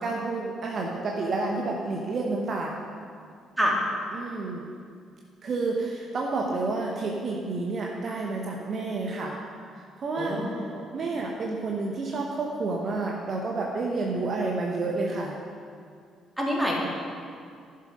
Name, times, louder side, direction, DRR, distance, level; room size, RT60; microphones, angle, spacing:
voice 1, 0.0-2.9 4.1-4.6 5.4-9.3 10.0-10.4 10.9-15.3, right 3 dB, 45° right, 0 dB, 1.0 m, -30 dB
voice 2, 10.2-10.8 16.4-16.9, equal, 5° right, -3 dB, 2.7 m, -27 dB
11.5 x 6.6 x 5.3 m, 2.2 s
figure-of-eight pair, 45°, 0 cm